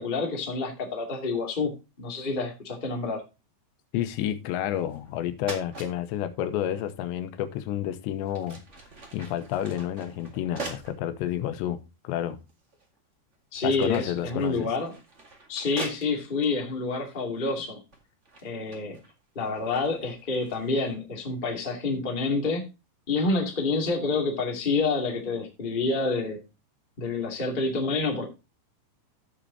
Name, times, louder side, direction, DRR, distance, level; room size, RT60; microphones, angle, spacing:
voice 1, 0.0-1.7 2.0-3.2 13.5-14.9 15.5-17.8 18.4-19.0 19.3-22.7 23.1-26.4 27.0-28.2, left 3 dB, 20° left, 1.5 m, -28 dB
voice 2, 3.9-8.6 9.1-12.4 13.6-14.7, left 11 dB, 85° left, 3.1 m, -30 dB
sound 1, 4.8-5.1 5.4-5.9 7.6-7.7 8.2-11.0 11.7-11.8 12.5-13.0 13.3-16.5 17.3-17.6 17.9-20.9, right 3 dB, 80° right, 0.6 m, -43 dB
15.5 x 6.3 x 2.7 m
omnidirectional pair, 5.0 m